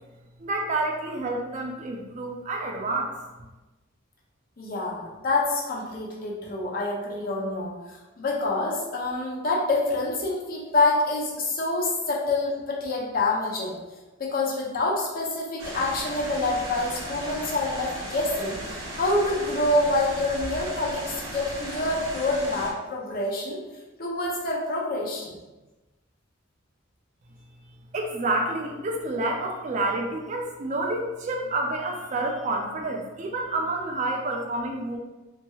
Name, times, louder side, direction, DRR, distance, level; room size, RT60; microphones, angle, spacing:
voice 1, 0.4-3.1 27.9-35.0, right 2 dB, 35° right, 1 dB, 0.3 m, -29 dB
voice 2, 4.6-7.7 8.2-13.8 14.2-18.6 19.0-23.6 24.0-25.4, left 2 dB, 45° left, -3 dB, 0.6 m, -26 dB
sound 1, 15.6-22.7, right 1 dB, 70° right, 0.7 m, -36 dB
2.8 x 2.7 x 2.3 m, 1.1 s
head